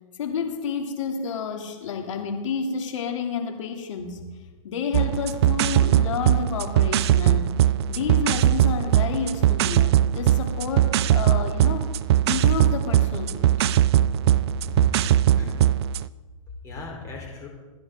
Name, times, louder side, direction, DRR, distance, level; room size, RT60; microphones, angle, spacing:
voice 1, 0.2-4.2 4.6-7.5 7.9-11.8 12.3-13.5, left 6 dB, 65° left, 3 dB, 3.0 m, -30 dB
sound 1, 4.9-16.1, right 12 dB, 50° right, 0.4 m, -21 dB
voice 2, 14.5-15.6 16.6-17.5, left 2 dB, 20° left, -1 dB, 4.3 m, -35 dB
28.0 x 10.5 x 3.9 m, 1.3 s
hypercardioid pair, 150°, 18 cm